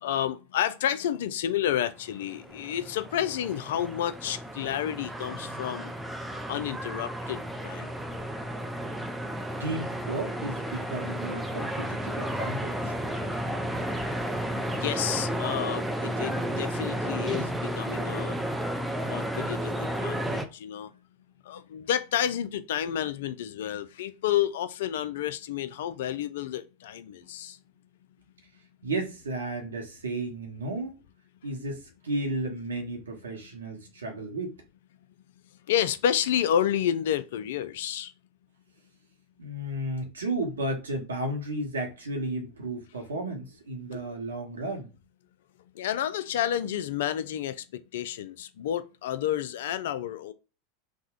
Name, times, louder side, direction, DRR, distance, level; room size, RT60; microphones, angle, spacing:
voice 1, 0.0-5.9 6.5-7.9 14.8-18.4 19.1-20.9 21.5-27.6 35.7-38.1 43.9-44.0 45.8-50.3, left 10 dB, 60° left, 0.3 m, -30 dB
sound 1, 2.2-20.4, right 1 dB, 5° right, 0.4 m, -32 dB
voice 2, 9.6-13.0 28.8-30.9 31.4-34.5 39.4-44.9, right 2 dB, 75° right, 0.9 m, -33 dB
3.5 x 2.1 x 2.4 m
figure-of-eight pair, 85°, 0 cm